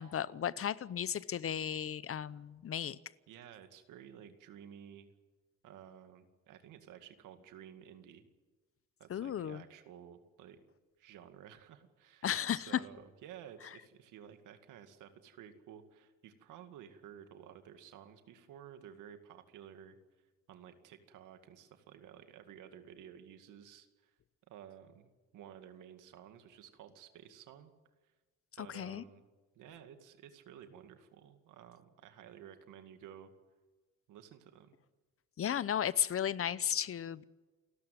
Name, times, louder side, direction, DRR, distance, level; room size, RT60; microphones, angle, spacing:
voice 1, 0.0-3.0 9.1-9.6 12.2-12.8 28.6-29.0 35.4-37.2, left 9 dB, 50° left, 0.8 m, -34 dB
voice 2, 3.3-5.1 5.6-8.3 9.0-10.6 11.0-20.0 20.5-24.1 24.5-27.7 28.6-29.3 29.6-33.3 34.1-34.7, right 9 dB, 90° right, 2.2 m, -53 dB
28.5 x 13.0 x 9.4 m
cardioid pair, 90°, 30 cm